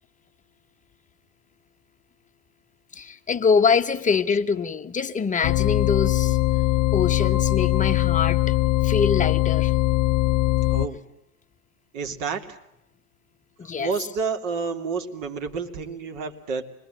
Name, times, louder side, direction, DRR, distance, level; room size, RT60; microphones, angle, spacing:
voice 1, 2.9-6.4 6.9-8.6 8.8-9.7 13.6-13.9, left 5 dB, 15° left, 7 dB, 1.1 m, -24 dB
sound 1, 5.4-10.9, left 17 dB, 45° left, 1.0 m, -21 dB
Mallet percussion, 7.2-9.8, left 2 dB, 10° right, 7.9 m, -44 dB
voice 2, 10.7-11.0 11.9-12.6 13.8-16.6, right 5 dB, 55° right, 4 dB, 3.3 m, -29 dB
26.0 x 21.5 x 9.2 m, 0.81 s
hypercardioid pair, 105°, 44 cm